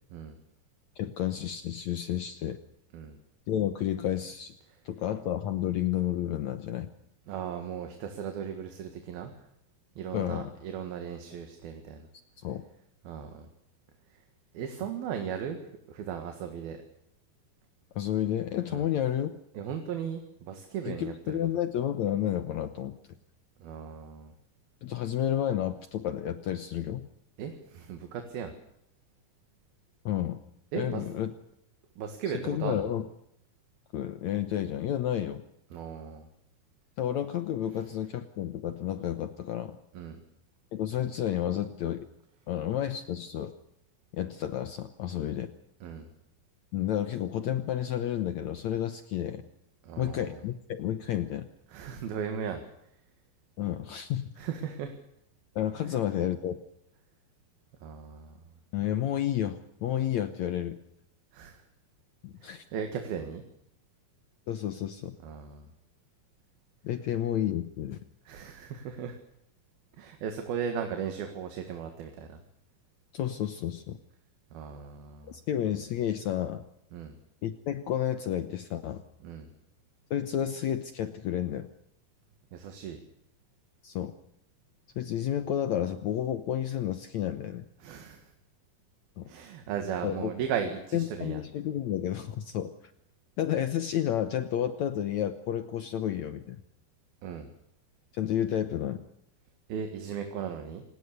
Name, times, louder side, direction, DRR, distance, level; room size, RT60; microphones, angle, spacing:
voice 1, 1.0-2.6 3.5-4.5 4.9-6.9 10.1-10.5 12.4-12.6 18.0-19.3 20.9-23.0 24.8-27.1 30.1-30.4 30.8-31.3 32.4-33.0 33.9-35.4 37.0-39.8 40.7-42.1 42.5-43.5 44.1-45.5 46.7-49.4 50.0-51.5 53.6-54.3 55.6-56.6 58.7-60.8 62.2-62.6 64.5-65.2 66.8-68.0 73.1-74.0 75.3-76.6 77.4-79.0 80.1-81.7 83.8-84.1 85.0-87.6 89.2-89.3 90.0-90.3 90.9-92.7 93.4-96.6 98.1-99.1, left 11 dB, 75° left, 10 dB, 1.6 m, -31 dB
voice 2, 7.3-9.4 10.0-12.1 13.1-13.5 14.5-15.6 15.9-16.8 18.7-18.9 19.6-21.4 23.6-24.3 27.4-28.5 30.7-31.1 32.0-32.9 35.7-36.3 39.9-40.2 45.8-46.1 49.8-50.4 51.7-52.6 54.4-54.9 55.8-56.0 57.8-58.4 61.3-61.6 62.4-63.4 65.2-65.7 68.3-69.2 70.0-72.4 74.5-75.4 76.9-77.2 79.2-79.5 82.5-83.0 87.8-88.3 89.3-91.4 97.2-97.5 99.7-100.8, right 7 dB, 70° right, 5 dB, 3.6 m, -37 dB
27.0 x 19.5 x 6.8 m, 0.76 s
omnidirectional pair, 4.6 m